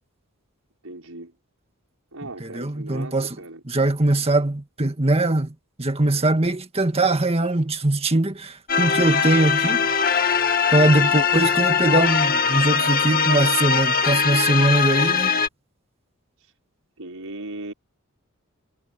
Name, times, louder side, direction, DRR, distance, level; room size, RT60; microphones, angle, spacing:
voice 1, 0.8-1.3 2.1-3.6 16.4-16.5 17.0-17.7, right 2 dB, 75° right, 5.9 m, -37 dB
voice 2, 2.4-3.4 3.7-9.9 10.7-15.4, right 2 dB, 25° right, 1.9 m, -21 dB
sound 1, 8.7-15.5, left 6 dB, 40° left, 2.1 m, -21 dB
head